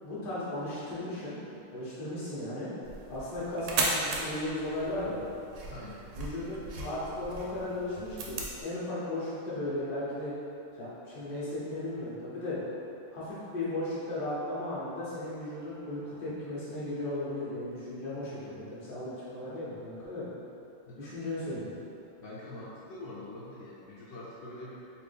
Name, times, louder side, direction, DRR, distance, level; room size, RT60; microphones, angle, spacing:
voice 1, 0.0-1.4 1.7-2.7 3.1-5.2 6.1-10.3 10.8-12.6 13.1-20.3 21.0-21.8, left 1 dB, 40° left, -10 dB, 0.7 m, -36 dB
sound 1, 2.8-8.6, right 3 dB, 75° right, 1.3 m, -36 dB
voice 2, 5.7-6.3 20.8-21.1 22.2-24.8, left 1 dB, 70° left, -8 dB, 1.2 m, -45 dB
3.4 x 3.0 x 3.3 m, 2.7 s
omnidirectional pair, 2.3 m